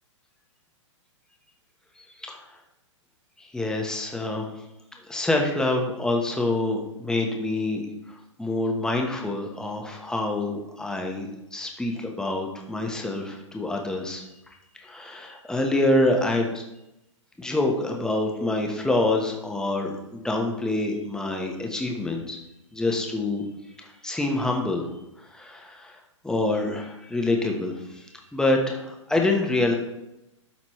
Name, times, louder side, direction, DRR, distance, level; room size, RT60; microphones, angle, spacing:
voice 1, 2.0-2.4 3.4-4.5 5.1-7.8 8.4-14.2 14.7-16.6 17.4-22.4 22.7-23.4 23.8-24.9 25.3-26.0 26.2-29.7, left 2 dB, 5° left, 1 dB, 1.0 m, -26 dB
12.0 x 4.2 x 3.1 m, 0.92 s
hypercardioid pair, 120°, 16 cm